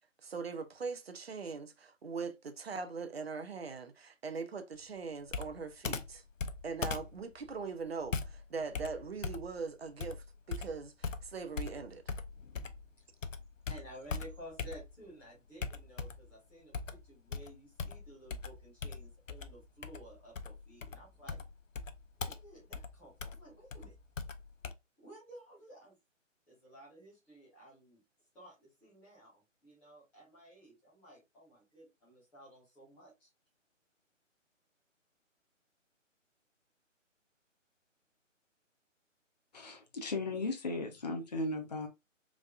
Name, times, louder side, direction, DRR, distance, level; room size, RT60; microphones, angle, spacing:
voice 1, 0.2-6.2 6.6-12.2, right 5 dB, 50° right, 0.6 m, -41 dB
Computer keyboard, 5.3-12.9 13.2-15.1 15.6-16.3 16.7-24.7, left 5 dB, 75° left, 0.6 m, -41 dB
voice 2, 13.7-21.4 22.2-23.9 25.0-26.0 26.5-28.0 28.3-33.3, right 1 dB, 5° left, 1.0 m, -54 dB
voice 3, 39.5-41.9, left 2 dB, 35° left, 0.7 m, -36 dB
4.2 x 3.5 x 2.4 m
figure-of-eight pair, 145°, 39 cm